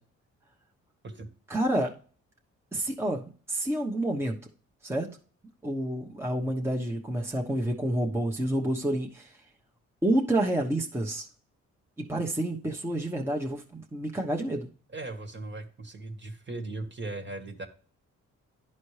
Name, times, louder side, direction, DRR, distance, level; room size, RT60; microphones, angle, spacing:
voice 1, 1.5-1.9 2.7-4.4 4.8-5.1 5.6-9.4 10.0-11.3 12.0-14.7, right 1 dB, 10° right, 0 dB, 1.0 m, -29 dB
voice 2, 14.9-17.7, right 2 dB, 40° right, 6 dB, 1.5 m, -38 dB
11.0 x 4.2 x 3.2 m, 0.43 s
cardioid pair, 75°, 29 cm